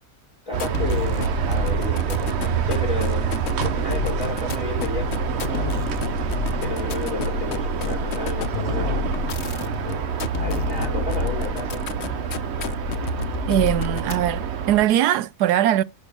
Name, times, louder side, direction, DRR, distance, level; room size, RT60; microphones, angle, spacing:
sound 1, 0.5-14.5, left 6 dB, 50° left, 1.0 m, -29 dB
voice 1, 0.5-2.3 2.6-3.4 3.6-5.9 6.6-9.1 9.8-11.8, left 4 dB, 20° right, 4.0 m, -32 dB
sound 2, 0.5-14.8, right 9 dB, 55° right, 0.9 m, -27 dB
voice 2, 13.5-15.8, right 12 dB, 90° right, 1.2 m, -21 dB
10.5 x 7.1 x 3.4 m
omnidirectional pair, 1.6 m